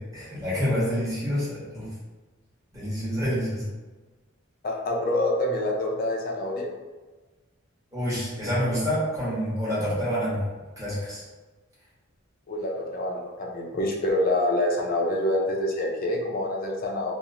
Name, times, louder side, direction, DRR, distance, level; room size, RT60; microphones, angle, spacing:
voice 1, 0.0-1.9 2.7-3.6 7.9-10.4 10.8-11.2, equal, 15° right, -9 dB, 1.0 m, -27 dB
voice 2, 4.6-6.7 12.5-17.1, left 1 dB, 45° left, -1 dB, 0.4 m, -26 dB
2.9 x 2.0 x 2.4 m, 1.3 s
head